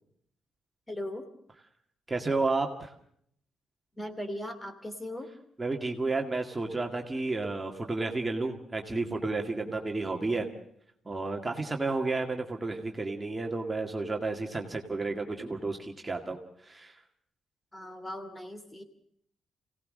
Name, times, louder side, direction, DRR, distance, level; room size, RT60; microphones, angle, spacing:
voice 1, 0.9-1.3 4.0-5.3 17.7-18.8, left 1 dB, 15° left, 8 dB, 2.8 m, -38 dB
voice 2, 2.1-2.9 5.6-10.5 11.1-16.4 16.6-17.0, right 3 dB, 20° right, 2 dB, 2.0 m, -31 dB
26.5 x 18.0 x 6.5 m, 0.68 s
cardioid pair, 105°, 0 cm